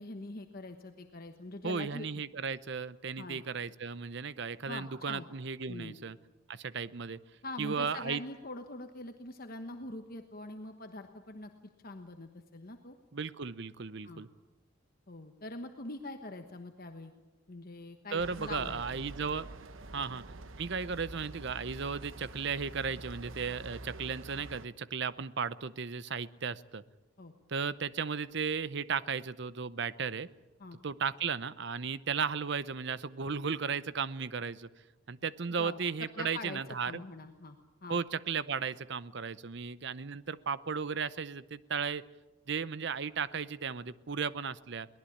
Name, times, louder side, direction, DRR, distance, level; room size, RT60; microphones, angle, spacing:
voice 1, 0.0-2.1 3.2-3.4 4.7-5.3 5.7-6.0 7.4-11.5 11.8-13.0 14.0-14.3 15.1-17.1 17.5-19.0 19.9-20.0 27.2-27.3 30.6-30.8 35.6-35.8 36.2-38.0, left 2 dB, 45° left, 6 dB, 1.2 m, -44 dB
voice 2, 1.6-6.2 6.5-7.2 7.6-8.2 13.1-14.3 18.1-19.5 19.9-20.2 20.6-26.8 27.5-30.3 30.8-34.7 35.1-37.0 37.9-42.0 42.5-44.9, right 5 dB, 55° right, 17 dB, 0.7 m, -35 dB
sound 1, 18.2-24.7, right 2 dB, 70° right, 1.1 m, -46 dB
23.0 x 18.5 x 8.6 m, 1.1 s
head